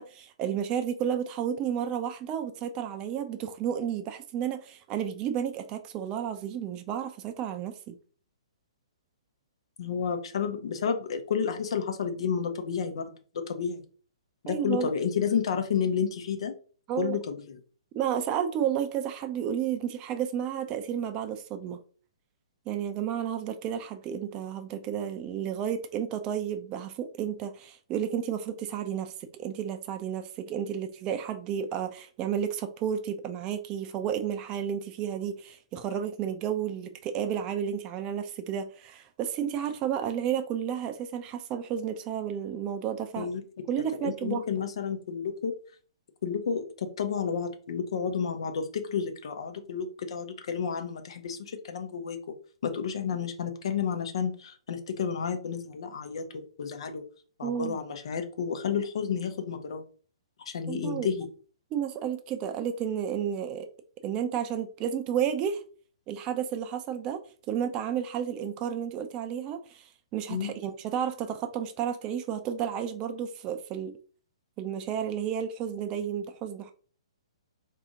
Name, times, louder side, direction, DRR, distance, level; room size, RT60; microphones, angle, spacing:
voice 1, 0.0-8.0 14.5-14.9 16.9-17.2 17.9-21.8 22.7-43.3 43.7-44.6 57.4-57.8 60.7-61.1 61.7-63.7 64.0-65.6 66.1-67.2 67.5-73.9 74.6-76.7, right 9 dB, 30° right, 0.6 m, -32 dB
voice 2, 9.8-13.8 14.4-16.5 17.0-17.6 43.2-43.6 44.0-45.5 46.2-52.2 52.6-57.0 57.4-59.8 60.5-61.3 70.3-70.5, left 6 dB, 65° left, 0.9 m, -31 dB
4.0 x 2.8 x 3.7 m
hypercardioid pair, 130°, 3 cm